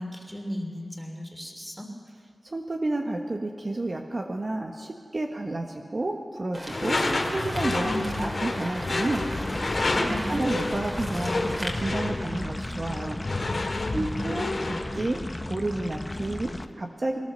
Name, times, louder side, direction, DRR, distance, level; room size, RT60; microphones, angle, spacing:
voice 1, 0.0-1.9 7.8-8.3 9.9-10.4 13.7-14.5 17.1-17.2, equal, ahead, 3 dB, 3.2 m, -35 dB
voice 2, 2.4-9.6 10.0-13.2 13.9-17.2, right 2 dB, 50° right, 3 dB, 1.3 m, -31 dB
sound 1, 6.5-11.7, equal, 20° right, 3.2 m, -37 dB
Door / Screech, 6.7-14.9, left 2 dB, 65° left, 2.3 m, -30 dB
sound 2, 9.3-16.7, left 1 dB, 25° left, 1.0 m, -35 dB
21.0 x 19.0 x 6.8 m, 2.2 s
wide cardioid pair, 55°, 0 cm